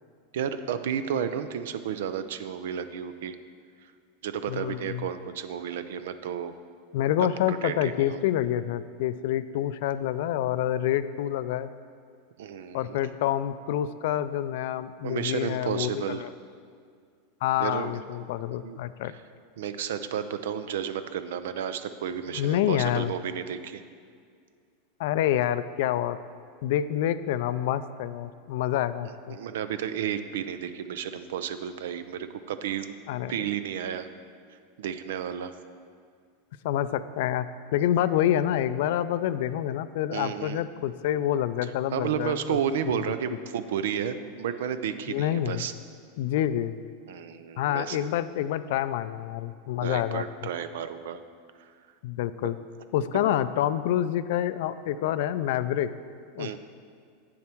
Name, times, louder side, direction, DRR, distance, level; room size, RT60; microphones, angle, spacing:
voice 1, 0.3-3.4 4.2-6.5 7.5-8.2 12.4-13.1 15.0-16.2 17.6-18.0 18.6-18.8 19.6-23.8 29.0-33.0 33.3-34.1 34.8-35.5 40.1-40.6 41.6-45.7 47.1-48.1 49.8-51.2 51.6-51.7 52.4-52.5 53.1-53.3 56.4-56.6, right 8 dB, 75° right, 11 dB, 0.5 m, -32 dB
voice 2, 4.5-5.1 6.9-11.7 12.7-16.3 17.4-19.1 22.3-23.1 25.0-26.2 26.6-29.4 33.1-33.3 36.6-37.5 37.7-42.6 45.1-45.7 46.2-46.8 47.6-50.2 52.0-52.6 52.9-55.9 56.4-56.6, left 11 dB, 65° left, 14 dB, 0.4 m, -27 dB
8.6 x 7.3 x 4.5 m, 2.2 s
hypercardioid pair, 100°, 0 cm